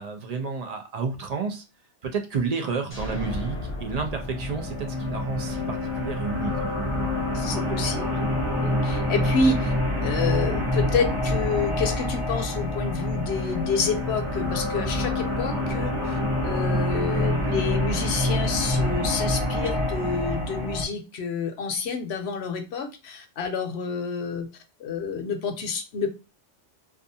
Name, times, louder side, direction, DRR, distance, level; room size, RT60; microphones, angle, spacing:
voice 1, 0.0-1.6 2.0-6.7, right 5 dB, 60° right, 5 dB, 0.4 m, -31 dB
sound 1, 2.9-6.6, left 1 dB, 15° left, 0.7 m, -36 dB
sound 2, 3.8-20.8, left 1 dB, 30° right, 0.8 m, -26 dB
voice 2, 7.3-8.3 8.5-9.7 10.0-24.5 24.8-26.1, left 4 dB, 70° left, 6 dB, 0.9 m, -29 dB
2.4 x 2.4 x 2.6 m, 0.29 s
omnidirectional pair, 1.2 m